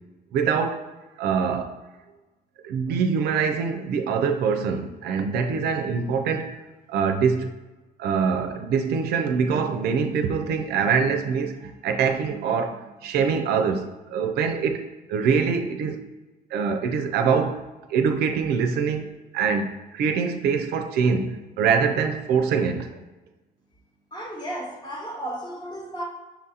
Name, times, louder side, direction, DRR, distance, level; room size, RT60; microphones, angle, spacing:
voice 1, 0.3-0.8 1.2-1.8 2.6-6.5 6.9-7.5 8.0-16.1 16.5-17.6 17.9-23.0, right 6 dB, 70° right, 0.4 m, -24 dB
voice 2, 24.1-26.0, right 1 dB, 25° left, 1.0 m, -34 dB
5.7 x 2.4 x 2.7 m
cardioid pair, 110°, 17 cm